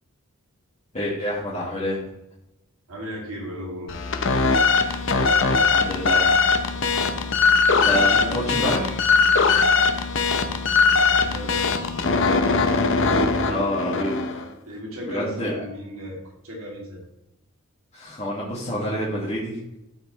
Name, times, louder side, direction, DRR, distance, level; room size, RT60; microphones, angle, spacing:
voice 1, 0.9-2.0 5.7-6.3 7.8-9.0 13.4-14.4 15.0-15.6 17.9-19.6, equal, 30° left, -8 dB, 1.9 m, -28 dB
voice 2, 2.9-3.9 7.6-8.5 11.1-11.7 14.7-16.2 16.4-17.0, equal, 75° right, -2 dB, 2.7 m, -35 dB
sound 1, 3.9-14.5, left 4 dB, 60° left, 0.7 m, -20 dB
13.0 x 5.0 x 3.2 m, 0.87 s
head